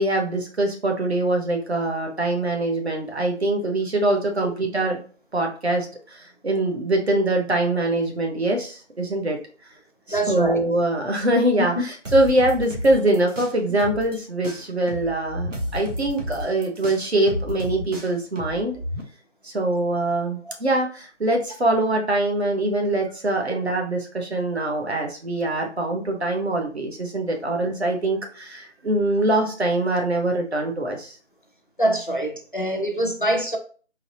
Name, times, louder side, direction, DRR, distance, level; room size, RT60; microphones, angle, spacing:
voice 1, 0.0-5.0 5.3-9.4 10.1-18.8 19.4-31.2, right 1 dB, 60° right, 1.1 m, -23 dB
voice 2, 10.1-10.6 31.8-33.6, right 1 dB, 45° left, 0.5 m, -24 dB
sound 1, 12.0-14.2 14.4-19.0, left 1 dB, 85° right, 1.2 m, -32 dB
4.0 x 2.9 x 2.8 m
figure-of-eight pair, 175°, 37 cm